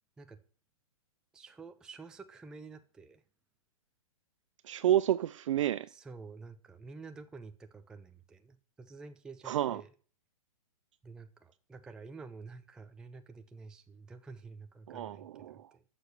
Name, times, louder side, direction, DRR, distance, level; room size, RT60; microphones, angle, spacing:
voice 1, 1.3-3.2 5.9-9.9 11.0-15.8, right 4 dB, 5° right, 0.4 m, -49 dB
voice 2, 4.6-5.9 9.4-9.8 14.9-15.7, right 12 dB, 60° right, 0.4 m, -30 dB
9.8 x 6.8 x 6.6 m
hypercardioid pair, 145°, 18 cm